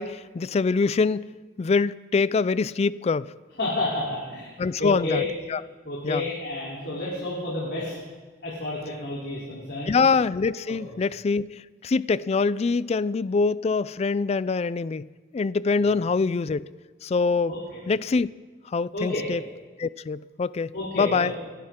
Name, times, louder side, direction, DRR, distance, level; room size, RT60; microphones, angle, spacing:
voice 1, 0.0-3.3 4.6-5.2 5.5-5.6 6.0-6.2 9.9-16.7 17.0-17.5 17.9-18.3 18.7-19.4 19.8-21.3, left 4 dB, 35° left, 0.3 m, -24 dB
voice 2, 3.6-4.5 4.8-5.2 5.8-7.9 8.4-10.0 10.6-10.8 15.8-15.9 17.5-17.8 18.9-19.2 20.7-21.4, left 2 dB, 75° left, 3.5 m, -30 dB
29.0 x 12.0 x 3.7 m
head